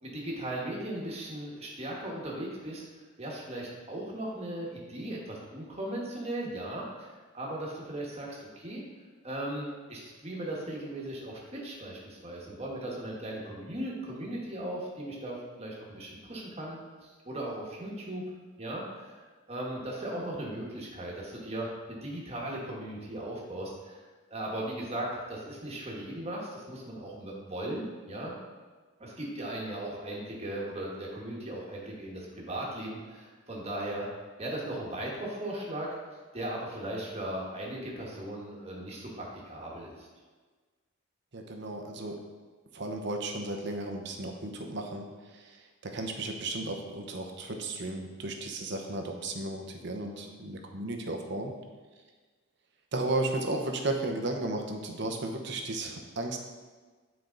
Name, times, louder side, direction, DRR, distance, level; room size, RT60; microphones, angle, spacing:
voice 1, 0.0-8.8 9.2-18.2 18.6-24.0 24.3-28.3 29.0-34.1 34.4-36.0 36.3-40.1, right 1 dB, 30° right, -3 dB, 1.5 m, -37 dB
voice 2, 41.3-42.2 42.7-45.1 45.8-51.5 52.9-56.4, right 2 dB, 55° right, 3 dB, 0.8 m, -34 dB
8.8 x 4.6 x 3.9 m, 1.4 s
head